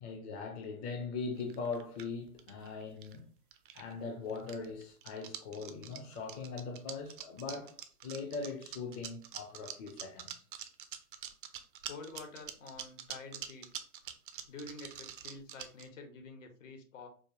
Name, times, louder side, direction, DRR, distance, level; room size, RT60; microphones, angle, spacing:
voice 1, 0.0-3.3 3.7-7.7 8.0-10.3, left 4 dB, 25° left, 0.5 m, -40 dB
sound 1, 1.4-3.2 3.5-4.0 4.3-15.8, right 9 dB, 40° right, 0.4 m, -45 dB
voice 2, 11.8-13.7 14.5-17.1, left 3 dB, 60° left, 1.0 m, -48 dB
4.8 x 2.1 x 2.6 m
figure-of-eight pair, 115°, 42 cm